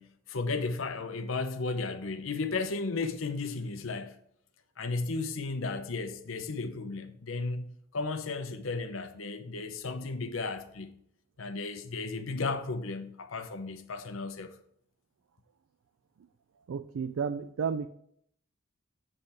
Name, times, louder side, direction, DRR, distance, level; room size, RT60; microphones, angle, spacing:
voice 1, 0.0-4.1 4.8-10.9 11.4-14.5, left 3 dB, 75° left, 0.7 m, -34 dB
voice 2, 16.7-17.9, right 6 dB, 75° right, 0.3 m, -32 dB
8.6 x 3.3 x 5.7 m
head